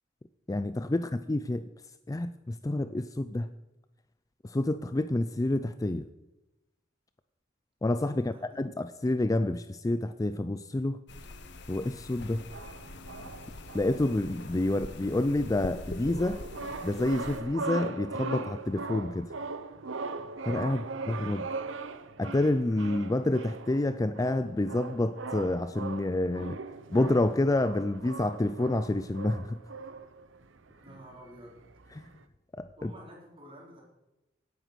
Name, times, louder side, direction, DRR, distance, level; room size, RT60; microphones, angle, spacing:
voice 1, 0.5-1.6 2.1-3.5 4.4-6.0 7.8-11.0 11.7-12.4 13.7-16.4 16.8-19.3 20.5-21.5 22.2-26.6 26.9-29.6 32.6-32.9, left 2 dB, 20° left, 12 dB, 0.4 m, -28 dB
voice 2, 8.1-8.6 20.6-21.0 30.8-31.6 32.8-33.8, equal, 30° right, -2 dB, 4.4 m, -51 dB
sound 1, 11.1-17.4, left 2 dB, 65° left, 1.3 m, -43 dB
sound 2, 12.4-32.2, right 3 dB, 80° right, 0.9 m, -40 dB
17.0 x 9.1 x 6.2 m, 0.99 s
head